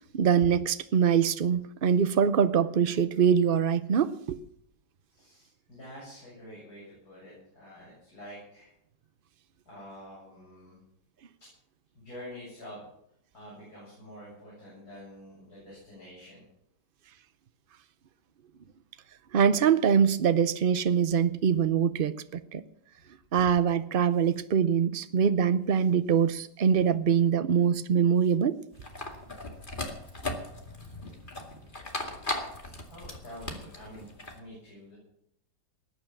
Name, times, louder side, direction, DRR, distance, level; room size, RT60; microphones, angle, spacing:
voice 1, 0.1-4.4 19.3-22.6 23.3-28.6, right 7 dB, 80° right, 12 dB, 0.4 m, -24 dB
voice 2, 5.1-8.7 9.6-10.8 11.4-11.5 11.9-12.9 13.3-16.4 32.9-34.9, equal, 55° left, -7 dB, 8.2 m, -47 dB
sound 1, 28.7-34.4, left 2 dB, 25° left, 2.3 m, -38 dB
20.0 x 9.1 x 7.3 m, 0.73 s
omnidirectional pair, 2.0 m